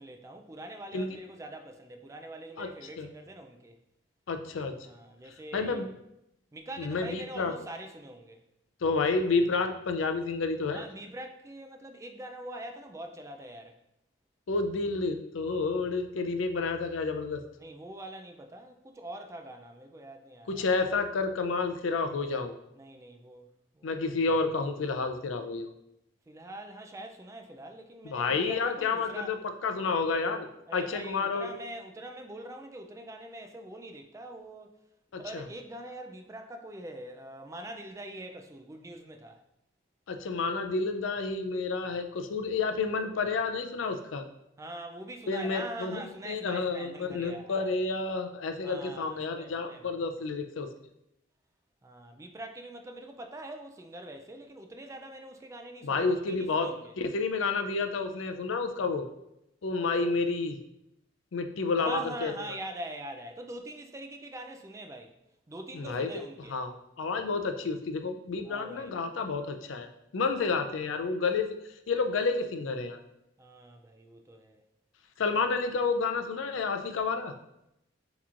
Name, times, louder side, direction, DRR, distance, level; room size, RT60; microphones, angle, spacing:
voice 1, 0.0-3.8 4.9-5.9 6.5-8.4 10.7-13.8 17.6-20.6 22.7-24.1 26.3-29.3 29.8-30.0 30.7-34.8 35.2-39.4 44.6-47.7 48.6-50.0 51.8-56.9 60.0-60.1 61.8-65.1 65.5-66.6 68.4-68.9 70.2-70.4 73.4-74.6, right 1 dB, 15° right, 0.3 m, -43 dB
voice 2, 4.3-4.7 5.5-5.9 6.8-7.5 8.8-10.8 14.5-17.4 20.5-22.5 23.8-25.7 28.0-30.5 30.7-31.6 35.1-35.4 40.1-44.3 45.3-50.7 55.8-59.1 59.6-60.6 61.3-62.3 65.7-66.1 66.5-71.5 71.9-73.0 75.2-77.3, left 4 dB, 80° left, 0.5 m, -30 dB
7.2 x 3.0 x 2.5 m
head